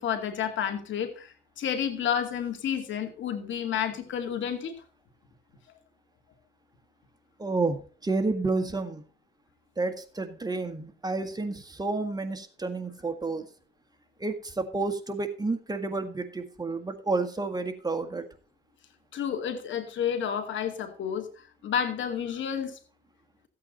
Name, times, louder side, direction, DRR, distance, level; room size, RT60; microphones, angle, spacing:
voice 1, 0.0-4.7 19.1-21.3 21.6-22.8, left 8 dB, 70° left, 6 dB, 2.4 m, -30 dB
voice 2, 7.4-9.0 9.8-13.5 14.2-18.3, right 3 dB, 20° right, 7 dB, 1.8 m, -30 dB
14.5 x 8.6 x 4.0 m, 0.38 s
cardioid pair, 90°, 20 cm